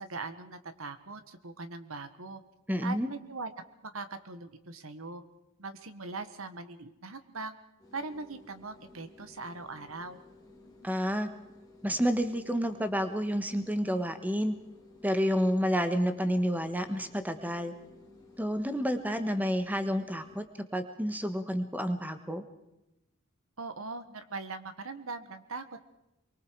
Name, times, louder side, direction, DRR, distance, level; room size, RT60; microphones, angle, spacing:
voice 1, 0.0-2.4 2.8-3.5 3.8-5.2 5.6-7.6 7.9-10.2 23.6-25.8, right 3 dB, 75° right, 10 dB, 1.6 m, -41 dB
voice 2, 2.7-3.1 10.8-11.3 11.8-14.5 15.0-17.7 18.4-20.4 20.7-22.4, equal, 10° right, 8 dB, 1.4 m, -29 dB
sound 1, 7.8-20.5, left 2 dB, 20° left, 3.3 m, -56 dB
24.5 x 23.5 x 4.8 m, 0.91 s
head